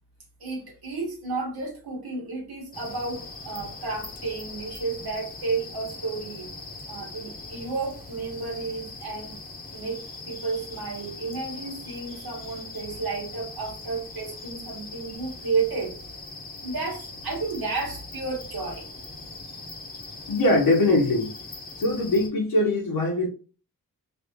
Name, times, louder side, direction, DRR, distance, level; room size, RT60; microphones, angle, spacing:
voice 1, 0.4-6.5 6.9-9.4 9.7-15.9 16.6-18.9, right 4 dB, 85° right, 1.3 m, -32 dB
sound 1, 2.7-22.3, left 3 dB, 25° left, 0.8 m, -41 dB
voice 2, 20.3-21.4 21.8-23.3, left 2 dB, 80° left, 1.0 m, -22 dB
3.3 x 2.7 x 2.8 m
wide cardioid pair, 110°, 35 cm